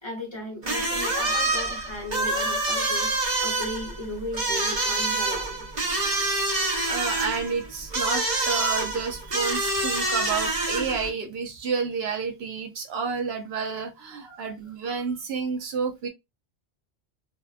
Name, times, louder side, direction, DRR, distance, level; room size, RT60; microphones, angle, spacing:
voice 1, 0.0-5.6 14.2-14.5, left 1 dB, 25° left, 0.9 m, -36 dB
sound 1, 0.6-11.1, right 2 dB, 40° right, 0.9 m, -27 dB
voice 2, 6.5-16.1, right 5 dB, 70° right, 0.8 m, -30 dB
2.7 x 2.2 x 2.3 m
omnidirectional pair, 1.1 m